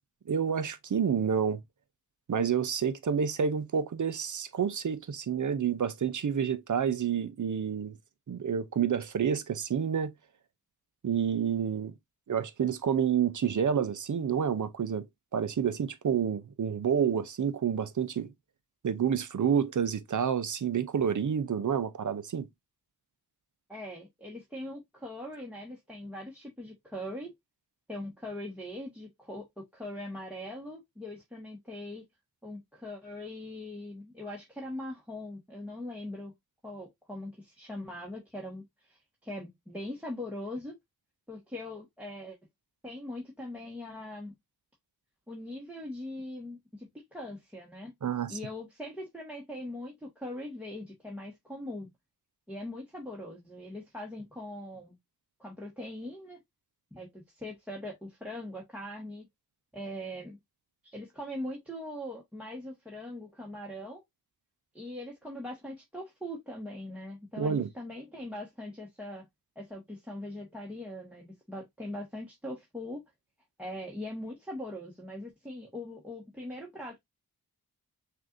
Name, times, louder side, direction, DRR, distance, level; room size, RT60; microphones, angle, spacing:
voice 1, 0.3-1.6 2.3-7.9 8.3-10.1 11.0-11.9 12.3-15.0 15.3-18.3 18.8-22.5 48.0-48.4 67.4-67.7, right 7 dB, 50° right, 0.6 m, -29 dB
voice 2, 23.7-27.3 27.9-32.0 32.4-36.3 36.6-40.7 41.3-42.4 42.8-44.3 45.3-47.9 48.3-51.9 52.5-55.0 55.4-56.4 56.9-59.3 59.7-60.4 60.8-64.0 64.7-69.2 69.5-73.0 73.6-77.0, left 1 dB, 5° right, 1.4 m, -41 dB
6.1 x 2.6 x 2.5 m
cardioid pair, 55°, 39 cm